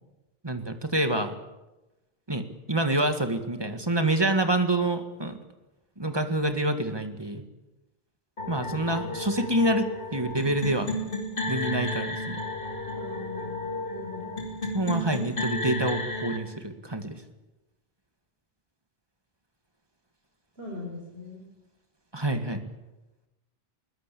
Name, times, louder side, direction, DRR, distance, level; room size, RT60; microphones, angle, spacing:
voice 1, 0.4-1.3 2.3-5.4 6.0-7.4 8.5-10.9 11.5-12.4 14.7-17.1 22.1-22.6, right 1 dB, 25° right, 7 dB, 1.9 m, -27 dB
sound 1, 8.4-16.4, left 2 dB, 60° left, 2.7 m, -33 dB
voice 2, 12.9-14.4 20.6-21.4, left 2 dB, 75° right, 0 dB, 4.4 m, -41 dB
21.5 x 20.0 x 8.5 m, 1.0 s
omnidirectional pair, 1.0 m